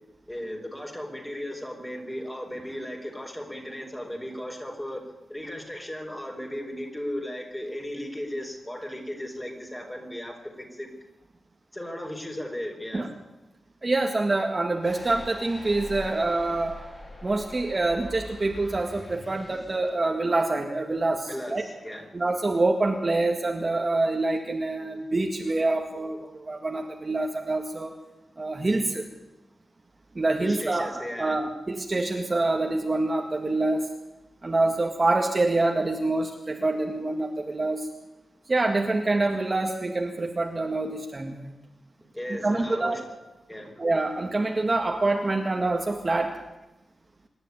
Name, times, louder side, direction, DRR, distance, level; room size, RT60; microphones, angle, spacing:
voice 1, 0.3-5.0 5.3-10.9 11.7-13.1 21.3-22.1 30.4-31.4 42.1-43.0 43.5-43.8, equal, 10° left, 2 dB, 4.2 m, -36 dB
voice 2, 13.8-16.8 17.2-21.6 22.1-27.9 28.4-29.0 30.2-33.9 34.4-37.9 38.5-41.5 42.4-43.0 43.8-46.3, right 2 dB, 30° right, 2 dB, 2.0 m, -26 dB
sound 1, 14.8-19.9, left 1 dB, 30° left, 7.3 m, -43 dB
25.5 x 11.0 x 9.4 m, 1.0 s
wide cardioid pair, 115°, 0 cm